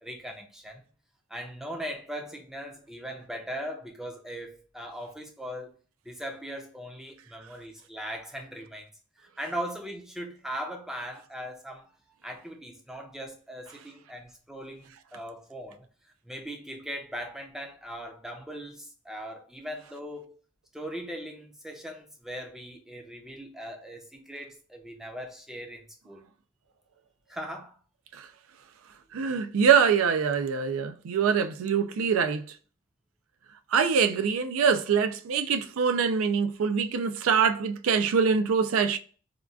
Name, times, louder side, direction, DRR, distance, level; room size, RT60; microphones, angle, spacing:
voice 1, 0.0-0.8 1.3-5.8 6.1-8.9 9.2-11.9 12.2-15.9 16.2-20.3 20.7-26.3 27.3-27.8, equal, ahead, 0.4 m, -39 dB
voice 2, 29.1-32.4 33.7-39.0, right 6 dB, 85° right, 0.4 m, -24 dB
3.6 x 2.3 x 2.2 m
head